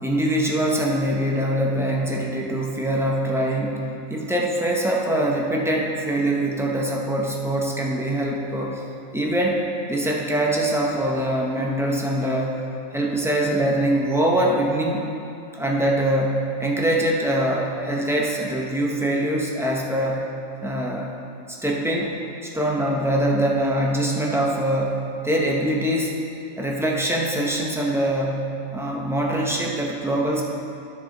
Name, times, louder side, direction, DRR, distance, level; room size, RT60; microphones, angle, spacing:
voice 1, 0.0-8.8 9.1-12.5 12.9-15.1 15.6-20.3 20.6-21.1 21.6-22.1 22.4-26.1 26.6-30.4, right 1 dB, 5° right, -2 dB, 0.6 m, -23 dB
10.5 x 6.1 x 3.9 m, 2.7 s
omnidirectional pair, 1.4 m